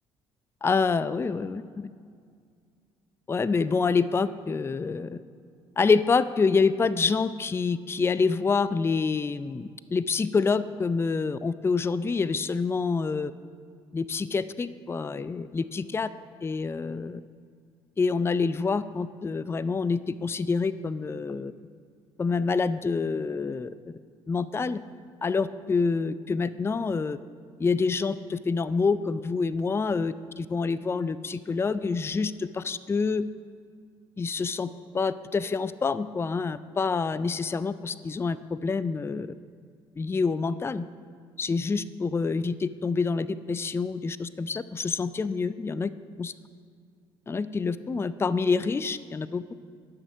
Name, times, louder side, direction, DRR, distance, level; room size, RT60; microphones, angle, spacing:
voice 1, 0.6-1.9 3.3-5.2 5.8-13.3 13.9-16.1 16.4-17.2 18.0-21.5 22.2-23.7 24.3-24.8 25.2-27.2 27.6-33.2 34.2-34.7 34.9-39.3 40.0-40.8 41.4-45.9 46.2-46.3 47.3-49.6, left 4 dB, 20° left, 15 dB, 0.4 m, -27 dB
11.5 x 6.2 x 6.2 m, 2.1 s
hypercardioid pair, 55°, 13 cm